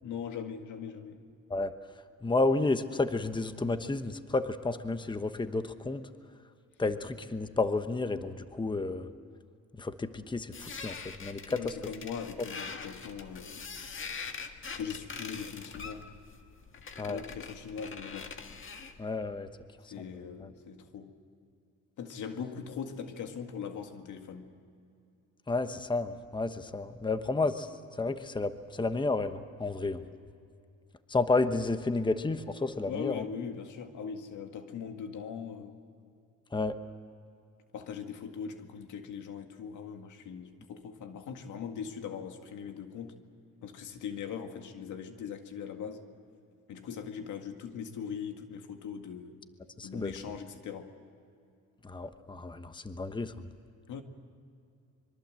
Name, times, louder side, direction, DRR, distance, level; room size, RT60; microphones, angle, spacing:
voice 1, 0.0-1.2 11.5-13.6 14.8-16.1 17.1-18.3 19.9-21.1 22.0-24.6 32.9-35.8 37.7-43.1 43.6-46.1 46.7-49.4 49.8-50.9 53.9-54.0, left 7 dB, 80° left, 6 dB, 2.1 m, -40 dB
voice 2, 2.2-6.0 6.8-9.1 9.8-11.7 17.0-17.2 19.0-19.5 25.5-27.7 28.0-30.0 31.1-33.2 36.5-36.8 49.8-50.1 51.8-53.3, left 3 dB, 15° left, 10 dB, 1.1 m, -31 dB
sound 1, 10.5-19.0, left 5 dB, 40° left, 1.7 m, -43 dB
25.5 x 23.0 x 7.7 m, 2.5 s
cardioid pair, 90°, 30 cm